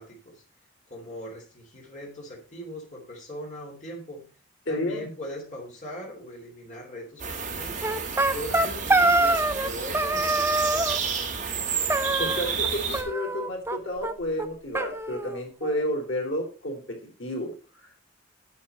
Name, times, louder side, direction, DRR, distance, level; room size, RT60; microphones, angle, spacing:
voice 1, 0.0-4.3 4.7-8.0 8.3-10.9, equal, 40° left, -1 dB, 3.1 m, -40 dB
voice 2, 4.6-5.1 12.0-18.0, left 1 dB, 80° left, 0 dB, 3.4 m, -31 dB
sound 1, 7.2-13.0, right 6 dB, 40° right, 2.1 m, -30 dB
sound 2, 7.8-9.7 9.9-11.0 11.9-12.7 12.9-13.8 14.0-14.1 14.4-14.5 14.7-15.8, right 2 dB, 15° right, 0.6 m, -25 dB
8.6 x 8.4 x 4.3 m, 0.35 s
head